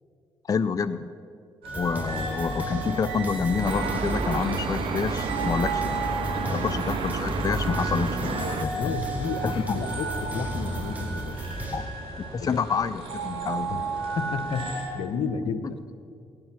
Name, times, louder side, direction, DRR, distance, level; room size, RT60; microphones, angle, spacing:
voice 1, 0.5-1.1 1.8-6.0 6.5-8.9 9.4-9.8 11.7-11.9 12.3-13.8, left 5 dB, 40° left, 11 dB, 0.5 m, -28 dB
sound 1, 1.6-14.8, right 3 dB, 85° right, 2.7 m, -34 dB
sound 2, 1.7-11.8, equal, 15° right, 3.3 m, -34 dB
sound 3, 3.6-8.7, right 7 dB, 65° right, 0.8 m, -32 dB
voice 2, 6.4-6.8 8.0-11.4 12.4-12.6 13.7-13.8 14.2-14.7 14.9-15.8, left 6 dB, 80° left, 9 dB, 0.9 m, -32 dB
18.0 x 9.7 x 5.9 m, 2.4 s
supercardioid pair, 60°, 9 cm